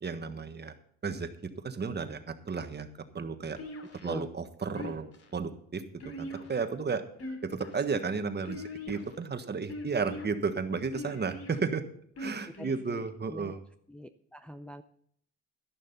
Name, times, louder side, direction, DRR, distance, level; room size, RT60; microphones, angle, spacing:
voice 1, 0.0-0.7 1.0-2.9 3.1-3.6 3.9-7.0 7.4-11.8 12.2-13.6, right 5 dB, 35° right, 8 dB, 1.4 m, -33 dB
sound 1, 3.6-4.2 4.8-5.3 6.0-6.7 7.1-7.8 8.5-9.2 9.7-10.3 10.9-11.6 12.2-12.8, left 1 dB, 50° left, 3.0 m, -41 dB
voice 2, 13.9-14.8, left 1 dB, 5° left, 7 dB, 0.6 m, -42 dB
12.0 x 11.0 x 4.1 m, 0.64 s
cardioid pair, 90°, 30 cm